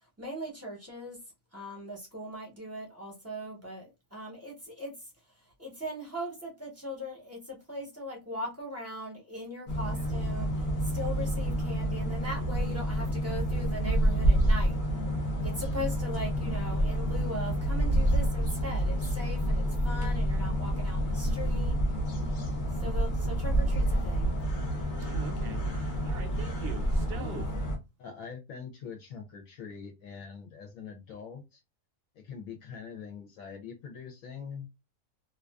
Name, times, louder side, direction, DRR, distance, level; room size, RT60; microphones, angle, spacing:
voice 1, 0.2-1.2 1.5-5.1 5.3-14.8 15.4-21.8 22.8-24.4 26.5-26.6 27.1-27.6, left 1 dB, 15° right, 0.7 m, -40 dB
sound 1, 9.7-27.8, right 1 dB, 50° left, 0.5 m, -28 dB
voice 2, 25.0-27.5, right 6 dB, 55° right, 0.7 m, -43 dB
voice 3, 28.0-31.6 32.2-34.7, left 6 dB, 70° left, 0.9 m, -43 dB
2.5 x 2.3 x 2.3 m
omnidirectional pair, 1.6 m